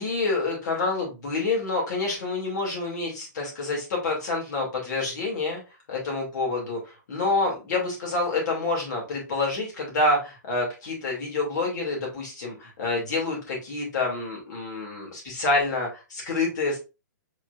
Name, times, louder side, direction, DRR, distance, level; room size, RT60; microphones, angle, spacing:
voice 1, 0.0-5.6 5.9-16.8, left 3 dB, 65° left, -1 dB, 3.0 m, -27 dB
4.7 x 4.1 x 2.6 m, 0.29 s
hypercardioid pair, 140°, 10 cm